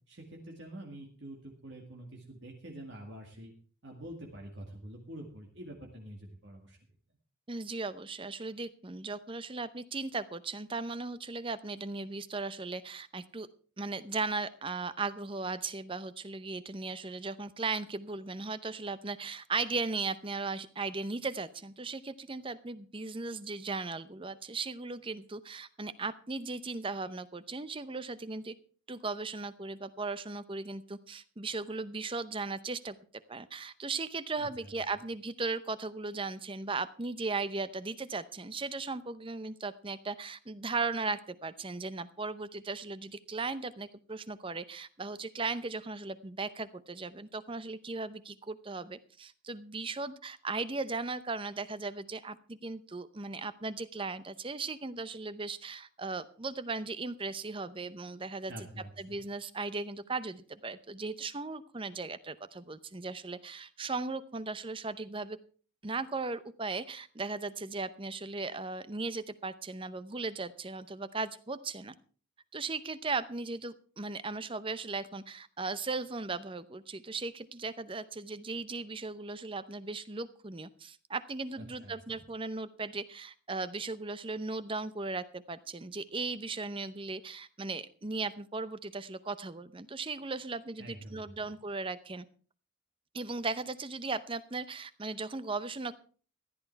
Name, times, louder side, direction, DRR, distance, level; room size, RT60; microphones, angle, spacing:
voice 1, 0.1-3.5 3.8-6.8 34.4-34.7 58.5-59.2 81.6-82.2 90.8-91.5, right 1 dB, 55° right, 0 dB, 2.1 m, -47 dB
voice 2, 7.5-13.5 13.8-28.5 28.9-33.0 33.3-58.5 59.0-65.4 65.8-71.9 72.5-92.3 93.1-95.9, right 3 dB, 25° right, 15 dB, 0.7 m, -37 dB
15.0 x 11.0 x 4.6 m, 0.41 s
head